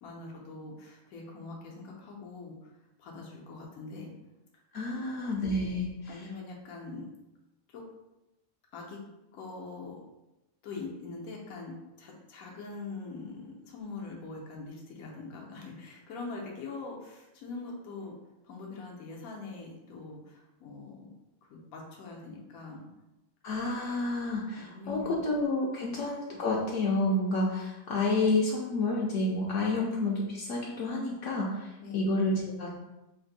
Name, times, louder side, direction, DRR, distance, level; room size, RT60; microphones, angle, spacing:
voice 1, 0.0-2.7 3.0-4.1 4.9-5.3 6.1-7.1 7.7-7.8 8.7-9.0 9.3-10.0 10.6-18.2 18.4-21.1 21.5-22.9 24.6-25.2 31.8-32.1, left 3 dB, 85° left, -1 dB, 1.2 m, -43 dB
voice 2, 4.7-6.2 23.4-32.8, left 2 dB, 70° left, -3 dB, 0.9 m, -30 dB
3.4 x 2.5 x 3.9 m, 0.97 s
omnidirectional pair, 1.5 m